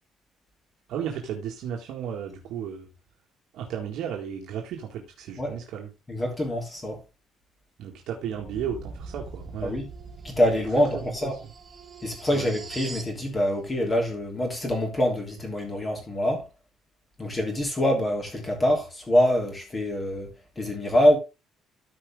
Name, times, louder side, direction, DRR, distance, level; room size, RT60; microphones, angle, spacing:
voice 1, 0.9-2.9 3.5-5.9 7.8-9.7 10.9-11.3 12.3-12.5, right 8 dB, 70° right, 1.8 m, -34 dB
voice 2, 6.1-7.0 9.6-9.9 10.2-11.3 12.0-16.5 17.2-20.3 20.6-21.2, left 1 dB, 20° left, 3.2 m, -25 dB
sound 1, 8.3-13.2, right 4 dB, 20° right, 2.3 m, -42 dB
13.5 x 5.0 x 3.6 m
cardioid pair, 175°, 0 cm